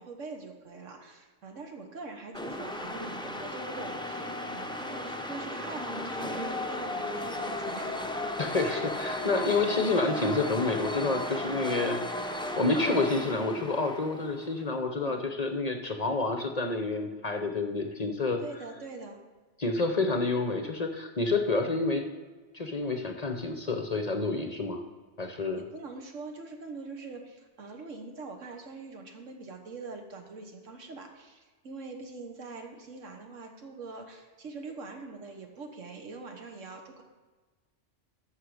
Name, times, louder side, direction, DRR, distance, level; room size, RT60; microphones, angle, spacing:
voice 1, 0.0-8.0 15.0-15.3 18.4-19.2 25.2-37.0, right 3 dB, 85° right, 4 dB, 1.6 m, -43 dB
sound 1, 2.3-14.6, left 1 dB, 5° left, 0.5 m, -35 dB
voice 2, 8.4-18.4 19.6-22.0 22.5-24.8 25.2-25.6, left 3 dB, 40° left, 5 dB, 0.7 m, -29 dB
14.5 x 5.6 x 4.9 m, 1.3 s
omnidirectional pair, 1.3 m